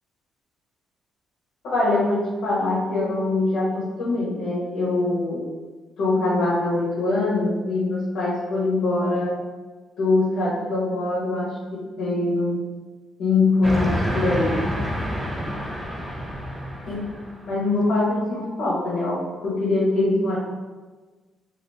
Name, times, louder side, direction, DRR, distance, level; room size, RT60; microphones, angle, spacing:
voice 1, 1.6-5.4 6.0-9.4 10.0-12.6 13.2-14.5 16.9-17.1 17.5-20.4, left 2 dB, 75° left, -7 dB, 1.0 m, -23 dB
Train, 13.6-17.5, equal, 10° right, 0.6 m, -28 dB
2.6 x 2.6 x 3.4 m, 1.3 s
cardioid pair, 90°, 0 cm